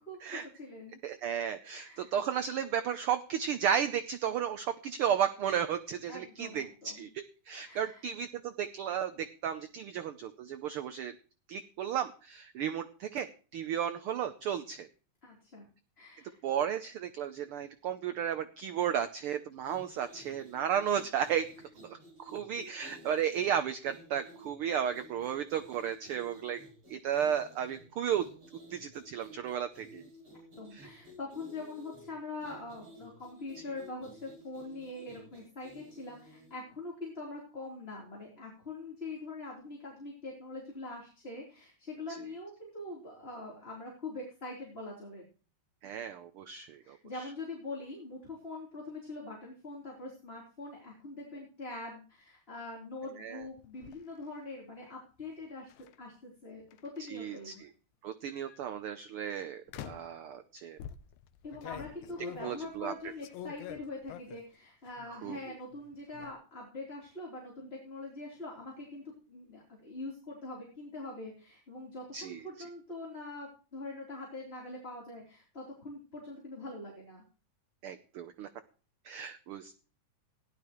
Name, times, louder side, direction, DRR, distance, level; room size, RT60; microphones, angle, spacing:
voice 1, 0.1-1.0 1.7-2.1 6.1-7.1 7.6-8.0 15.2-15.7 16.0-16.4 30.6-45.2 46.8-55.7 56.0-57.6 61.4-77.2, left 2 dB, 20° left, -3 dB, 3.6 m, -43 dB
voice 2, 1.0-11.1 11.5-13.3 13.5-14.9 16.4-21.5 21.8-26.6 26.9-28.3 28.7-30.1 30.7-30.9 45.8-47.2 53.2-53.4 57.1-57.7 58.0-60.8 62.4-62.9 65.2-65.4 72.1-72.4 77.8-78.5 79.0-79.8, right 9 dB, 75° right, 10 dB, 1.3 m, -34 dB
sound 1, 19.6-36.6, equal, 50° right, 6.2 m, -54 dB
sound 2, 53.4-54.0 55.7-55.9 56.7-57.5 58.3-58.6 59.7-60.2 60.8-64.5 64.9-65.5 65.7-66.3, left 11 dB, 90° left, 2.2 m, -47 dB
17.5 x 11.5 x 3.1 m, 0.38 s
omnidirectional pair, 3.3 m